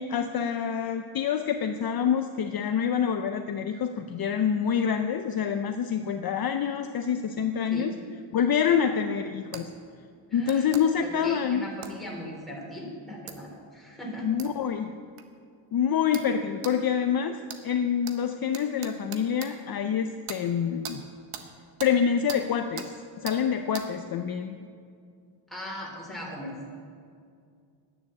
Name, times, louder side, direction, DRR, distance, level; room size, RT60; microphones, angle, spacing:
voice 1, 0.0-7.9 8.3-9.7 10.3-11.6 14.2-15.0 15.7-21.0 21.8-22.9 23.2-24.6, left 7 dB, 50° left, 6 dB, 0.6 m, -26 dB
sound 1, 9.5-9.7 10.5-10.8 11.8-12.0 13.3-13.4 14.4-14.5 15.2-15.3 16.1-16.3 16.6-16.8 17.5-17.6 18.1-18.2 18.5-19.5 20.3-20.4 20.8-21.0 21.3-21.5 21.8-21.9 22.3-22.4 22.8-22.9 23.3-23.4 23.7-23.9, right 8 dB, 90° right, 1.2 m, -39 dB
voice 2, 10.3-10.7 11.0-14.3 25.5-26.5, left 1 dB, ahead, -3 dB, 3.3 m, -39 dB
11.0 x 9.5 x 7.9 m, 2.3 s
cardioid pair, 140°, 49 cm